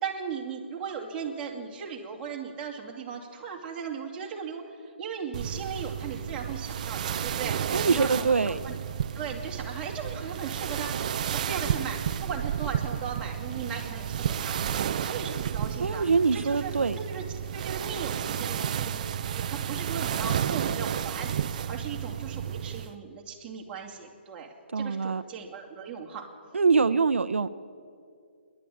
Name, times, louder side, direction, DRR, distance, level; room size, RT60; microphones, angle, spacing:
voice 1, 0.0-8.8 9.1-14.7 15.0-16.1 16.3-17.2 17.5-26.3, right 6 dB, 15° right, -2 dB, 2.7 m, -37 dB
sound 1, 5.3-22.9, right 9 dB, 40° right, 0.6 m, -32 dB
voice 2, 7.7-8.6 15.8-17.0 24.7-25.2 26.5-27.6, right 4 dB, 85° right, 11 dB, 0.8 m, -24 dB
29.0 x 12.0 x 8.6 m, 2.3 s
hypercardioid pair, 160°, 6 cm